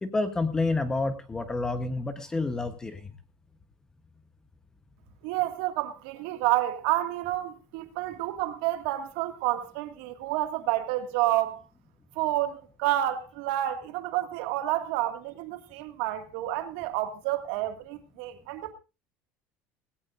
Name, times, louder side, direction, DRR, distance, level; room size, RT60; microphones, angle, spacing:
voice 1, 0.0-3.1, left 3 dB, 10° left, 1.0 m, -29 dB
voice 2, 5.2-11.6 12.2-18.7, right 14 dB, 75° right, 2.0 m, -29 dB
18.5 x 17.5 x 2.5 m
cardioid pair, 170°, 6 cm